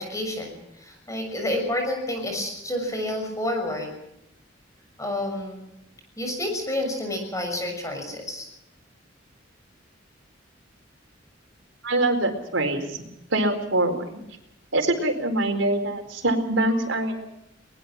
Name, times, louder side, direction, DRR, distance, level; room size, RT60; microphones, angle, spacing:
voice 1, 0.0-3.9 5.0-5.6 6.2-8.5, left 1 dB, 15° left, 3 dB, 6.5 m, -29 dB
voice 2, 11.8-12.8 13.3-14.2 14.7-17.2, right 1 dB, 85° right, 4 dB, 4.4 m, -24 dB
23.0 x 21.0 x 6.0 m, 0.83 s
head